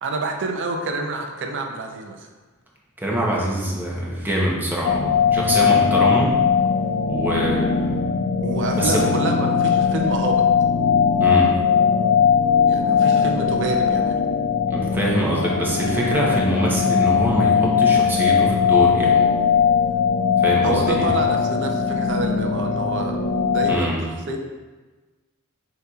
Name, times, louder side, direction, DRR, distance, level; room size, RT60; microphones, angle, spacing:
voice 1, 0.0-2.3 8.4-10.4 12.7-14.2 16.3-16.5 20.6-23.2 23.5-24.4, right 2 dB, 55° right, 3 dB, 0.5 m, -27 dB
voice 2, 3.0-6.4 7.1-7.9 8.7-9.0 11.2-11.5 14.7-19.2 20.4-21.1 23.7-24.0, right 1 dB, 10° right, -4 dB, 0.7 m, -24 dB
sound 1, 4.8-23.8, left 6 dB, 50° left, 0.3 m, -19 dB
6.5 x 2.9 x 2.3 m, 1.3 s
head